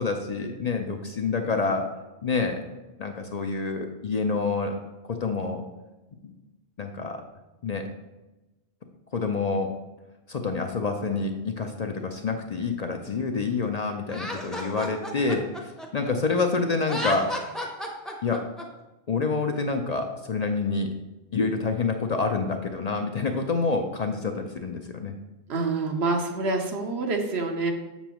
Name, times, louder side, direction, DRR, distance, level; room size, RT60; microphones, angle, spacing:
voice 1, 0.0-1.9 2.2-2.6 3.0-4.8 5.1-5.6 6.2-6.3 6.8-7.2 7.6-7.9 9.1-9.7 10.3-17.3 18.2-18.4 19.1-20.9 21.3-25.1, left 4 dB, 50° left, 4 dB, 0.6 m, -27 dB
Laughter, 14.1-16.4 16.8-18.6, left 1 dB, ahead, 0.7 m, -33 dB
voice 2, 25.5-27.7, right 3 dB, 75° right, 3 dB, 1.1 m, -27 dB
7.0 x 6.9 x 3.0 m, 1.1 s
omnidirectional pair, 1.1 m